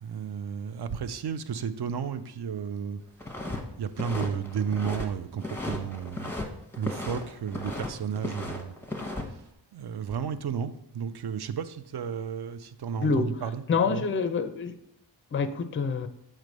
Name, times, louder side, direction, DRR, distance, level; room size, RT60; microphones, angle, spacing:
voice 1, 0.0-3.0 3.8-6.3 6.8-8.7 9.7-14.1, right 7 dB, 60° right, 0.5 m, -33 dB
sound 1, 3.2-3.6 3.9-5.1 5.4-6.5 6.7-7.9 8.2-9.2, left 2 dB, 5° left, 0.8 m, -35 dB
voice 2, 13.0-13.3 13.7-14.7 15.3-16.1, left 5 dB, 30° left, 0.4 m, -26 dB
7.5 x 3.2 x 5.2 m
wide cardioid pair, 105°, 45 cm